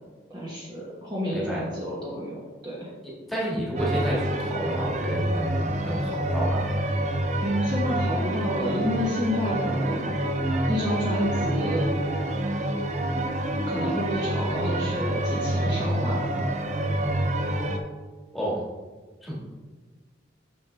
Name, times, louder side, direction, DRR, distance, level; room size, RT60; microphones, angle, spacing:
voice 1, 0.3-2.9 7.4-10.1 10.7-11.9 13.7-16.5, equal, 20° right, -7 dB, 1.1 m, -30 dB
voice 2, 1.3-1.6 3.3-6.7 18.3-18.6 19.2-19.4, equal, ahead, -6 dB, 1.8 m, -30 dB
sound 1, 3.8-17.8, right 1 dB, 40° right, 0.6 m, -27 dB
7.5 x 6.2 x 3.4 m, 1.3 s
head